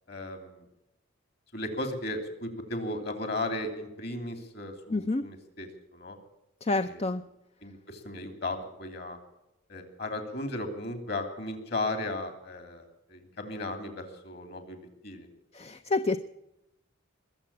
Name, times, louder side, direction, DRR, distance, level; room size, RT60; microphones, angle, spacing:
voice 1, 0.1-0.6 1.5-6.2 6.8-7.0 7.6-9.2 9.7-15.3, left 2 dB, 50° left, 7 dB, 2.9 m, -36 dB
voice 2, 4.9-5.2 6.6-7.2 15.5-16.2, left 2 dB, 30° left, 10 dB, 0.5 m, -28 dB
21.5 x 7.7 x 8.5 m, 0.91 s
head